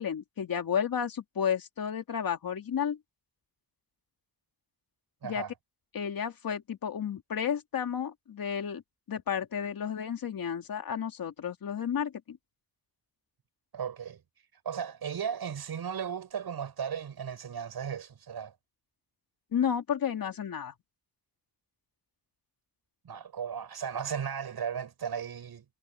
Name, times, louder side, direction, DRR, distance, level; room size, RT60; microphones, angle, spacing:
voice 1, 0.0-3.0 5.2-5.4 5.9-8.8 9.1-12.4 19.5-20.7, left 8 dB, 65° left, 2.7 m, -32 dB
voice 2, 5.2-5.5 13.7-14.2 14.6-18.5 23.0-25.6, right 7 dB, 80° right, 6.3 m, -36 dB
wide cardioid pair, 175°, 37 cm